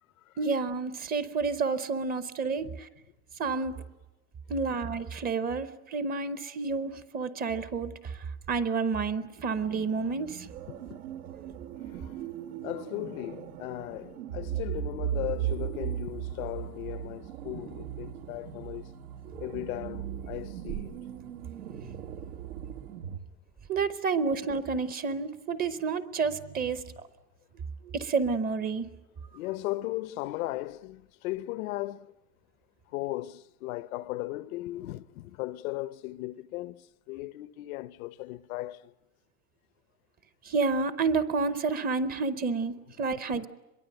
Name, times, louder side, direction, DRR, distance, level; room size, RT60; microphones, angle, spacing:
voice 1, 0.4-2.9 3.4-3.8 4.5-10.5 23.7-26.8 27.8-28.9 40.4-43.5, right 4 dB, 20° right, 0.7 m, -30 dB
sound 1, 9.6-23.2, right 10 dB, 90° right, 1.9 m, -38 dB
voice 2, 10.7-11.0 11.9-12.2 12.6-18.9 19.4-21.0 29.3-32.1 32.9-38.9, left 17 dB, 70° left, 0.8 m, -37 dB
24.5 x 22.5 x 7.9 m
supercardioid pair, 155°, 43 cm